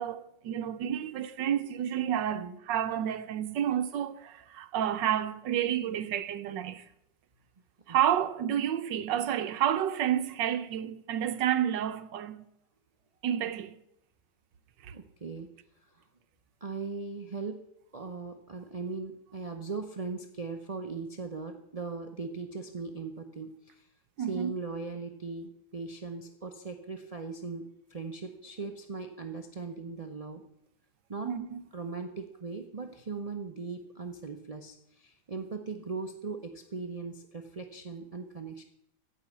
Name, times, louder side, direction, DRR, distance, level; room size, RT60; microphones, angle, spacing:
voice 1, 0.0-6.8 7.9-12.4 13.2-13.7 14.8-14.9 24.2-24.5 31.2-31.6, right 10 dB, 75° right, 1.4 m, -30 dB
voice 2, 14.9-15.5 15.8-16.0 16.6-17.7 17.9-23.9 24.2-30.4 31.1-31.3 31.7-38.6, right 4 dB, 50° right, 0.4 m, -39 dB
16.0 x 5.7 x 7.9 m
omnidirectional pair, 2.1 m